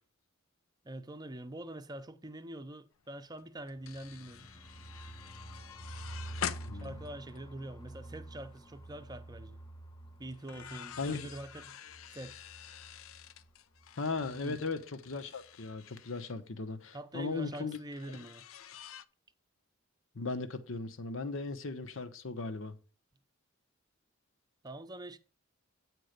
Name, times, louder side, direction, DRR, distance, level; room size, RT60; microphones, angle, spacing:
voice 1, 0.8-4.6 6.7-9.6 10.2-11.8 12.1-12.4 14.3-14.6 16.9-18.5 24.6-25.2, right 1 dB, 20° right, 0.6 m, -45 dB
sound 1, 3.0-3.1 3.3-8.0 8.4-8.7 10.3-16.4 17.7-19.0, left 8 dB, 85° left, 0.5 m, -47 dB
sound 2, 3.9-13.5 13.8-13.9 14.2-14.6, right 1 dB, 20° left, 0.9 m, -49 dB
voice 2, 6.7-7.0 11.0-11.3 14.0-17.8 20.1-22.7, left 3 dB, 70° left, 1.0 m, -37 dB
9.0 x 4.6 x 6.6 m
head